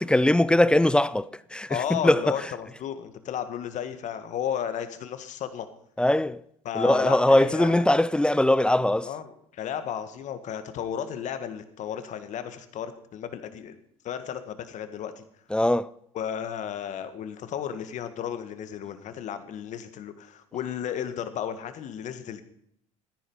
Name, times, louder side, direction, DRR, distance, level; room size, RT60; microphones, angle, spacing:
voice 1, 0.0-2.2 6.0-6.4 6.8-9.1 15.5-15.9, left 1 dB, 5° left, 0.5 m, -21 dB
voice 2, 1.7-5.7 6.7-7.9 9.0-13.8 14.0-15.2 16.1-22.4, left 9 dB, 55° left, 1.7 m, -33 dB
14.0 x 10.0 x 5.6 m
hypercardioid pair, 80°, 15 cm